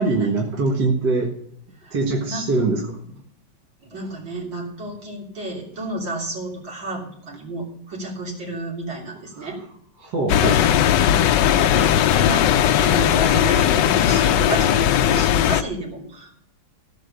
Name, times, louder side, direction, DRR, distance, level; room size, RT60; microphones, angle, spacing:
voice 1, 0.0-1.4 1.9-2.8 9.4-9.5 10.0-10.6, right 3 dB, 65° right, 0 dB, 2.1 m, -22 dB
voice 2, 2.3-2.6 3.8-9.6 11.1-12.5 12.7-16.4, right 1 dB, 85° right, -2 dB, 4.1 m, -31 dB
sound 1, 10.3-15.6, left 10 dB, 75° left, 1.2 m, -18 dB
16.0 x 6.4 x 6.8 m, 0.69 s
omnidirectional pair, 2.0 m